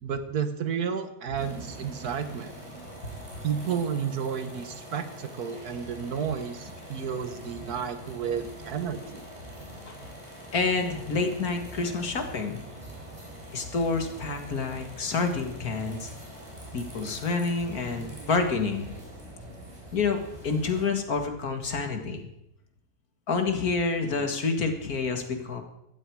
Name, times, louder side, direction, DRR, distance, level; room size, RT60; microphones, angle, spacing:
voice 1, 0.0-2.5 3.4-9.3, right 7 dB, 85° right, 9 dB, 1.8 m, -32 dB
sound 1, 1.3-20.9, right 1 dB, 20° right, 5.0 m, -44 dB
voice 2, 10.5-12.6 13.5-16.1 16.7-18.9 19.9-22.3 23.3-25.6, left 4 dB, 75° left, 5 dB, 2.3 m, -28 dB
18.0 x 13.0 x 4.8 m, 0.82 s
omnidirectional pair, 1.6 m